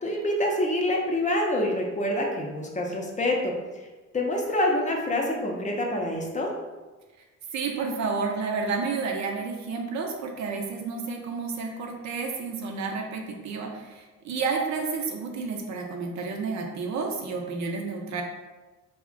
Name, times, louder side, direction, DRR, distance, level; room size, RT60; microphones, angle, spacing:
voice 1, 0.0-3.9 4.1-6.5, left 1 dB, 25° left, 0 dB, 0.5 m, -26 dB
voice 2, 7.5-18.2, right 4 dB, 65° right, 1 dB, 0.6 m, -31 dB
2.4 x 2.1 x 3.7 m, 1.2 s
cardioid pair, 90°, 30 cm